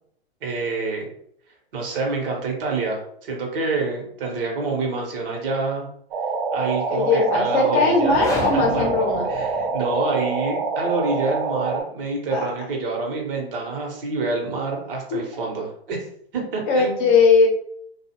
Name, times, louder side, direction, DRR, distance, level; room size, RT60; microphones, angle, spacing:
voice 1, 0.4-1.0 1.7-5.9 6.5-8.2 8.5-8.9 9.3-16.0 16.3-17.1, right 3 dB, 60° right, 1 dB, 1.1 m, -27 dB
sound 1, 6.1-11.8, right 4 dB, 40° right, 0.6 m, -26 dB
voice 2, 6.9-9.3 12.3-12.5 16.7-17.5, left 4 dB, 35° left, 0 dB, 0.8 m, -19 dB
sound 2, 8.0-10.1, left 2 dB, 10° left, 0.4 m, -32 dB
2.5 x 2.3 x 2.9 m, 0.66 s
hypercardioid pair, 115°, 32 cm